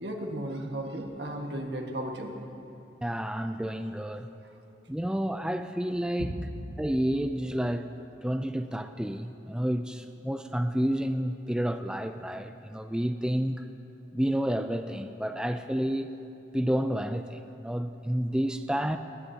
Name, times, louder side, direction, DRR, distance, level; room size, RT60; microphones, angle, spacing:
voice 1, 0.0-2.3 4.4-4.5 6.2-6.3, right 1 dB, 70° right, 2 dB, 1.6 m, -34 dB
voice 2, 3.0-4.3 4.9-6.3 6.8-7.9 8.2-13.6 14.1-16.1 16.5-19.0, equal, 5° right, 8 dB, 0.4 m, -30 dB
21.5 x 19.5 x 2.8 m, 2.8 s
head